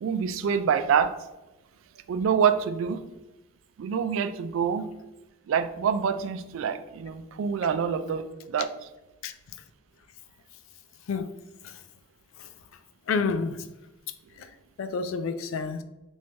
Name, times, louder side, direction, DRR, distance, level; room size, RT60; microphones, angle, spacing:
voice 1, 0.0-1.1 2.1-3.0 3.8-4.9 5.5-8.2 8.5-8.7, right 7 dB, 80° right, 0.3 m, -26 dB
voice 2, 13.1-13.6 14.4-14.5 14.8-15.8, left 5 dB, 90° left, 0.3 m, -29 dB
3.1 x 2.6 x 3.3 m
head